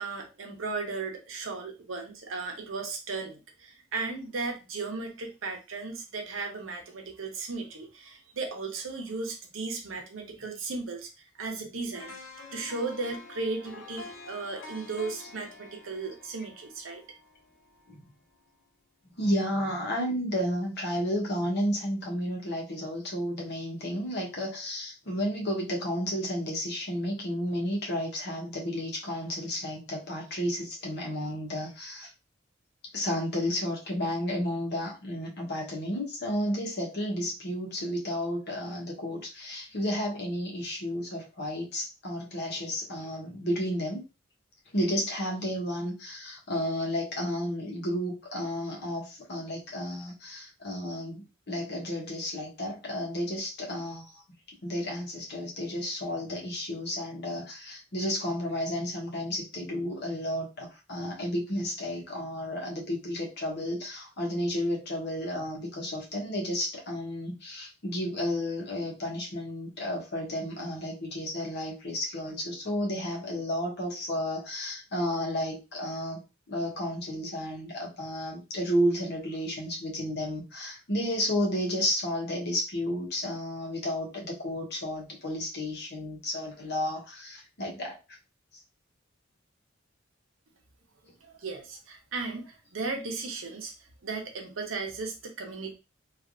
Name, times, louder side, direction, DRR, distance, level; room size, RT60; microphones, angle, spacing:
voice 1, 0.0-12.2 12.5-17.0 91.2-93.7 94.0-95.7, right 3 dB, 85° right, 3 dB, 0.8 m, -36 dB
sound 1, 11.9-18.0 18.3-18.5, left 3 dB, 75° left, 0.8 m, -47 dB
voice 2, 19.2-32.1 32.9-44.0 44.7-54.2 54.6-76.2 76.5-88.0, equal, 60° left, -1 dB, 1.0 m, -32 dB
3.3 x 2.5 x 2.5 m, 0.28 s
head